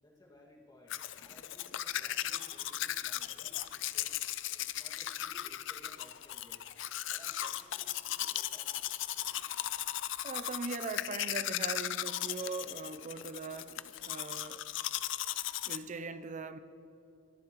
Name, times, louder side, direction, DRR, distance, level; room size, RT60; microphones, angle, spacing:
voice 1, 0.0-4.2 4.6-6.6 7.1-8.8, left 1 dB, 20° left, -2 dB, 1.9 m, -59 dB
Domestic sounds home sounds, 0.9-15.8, left 13 dB, 65° left, 0.4 m, -37 dB
voice 2, 10.2-13.8 14.0-14.6 15.6-16.6, right 4 dB, 40° right, 11 dB, 0.5 m, -40 dB
23.5 x 11.5 x 3.0 m, 2.9 s
head